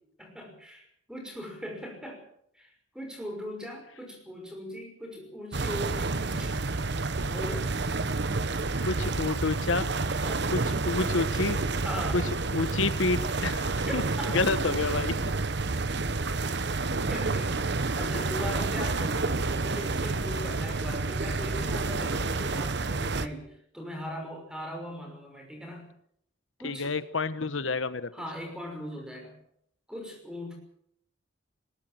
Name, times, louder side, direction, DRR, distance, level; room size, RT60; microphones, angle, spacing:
voice 1, 0.2-2.2 2.5-6.6 7.3-7.7 8.7-9.0 10.2-10.5 11.8-12.2 13.9-14.5 17.1-17.6 18.0-25.9 26.6-26.9 28.1-29.4 29.9-30.6, equal, 5° right, 3 dB, 5.9 m, -39 dB
sound 1, 5.5-23.3, right 3 dB, 60° right, 1.0 m, -29 dB
voice 2, 8.8-9.9 10.5-10.6 10.9-11.6 12.1-12.2 12.5-14.0 14.3-15.2 26.6-28.1, left 3 dB, 85° left, 13 dB, 1.1 m, -28 dB
21.0 x 18.0 x 7.8 m, 0.71 s
head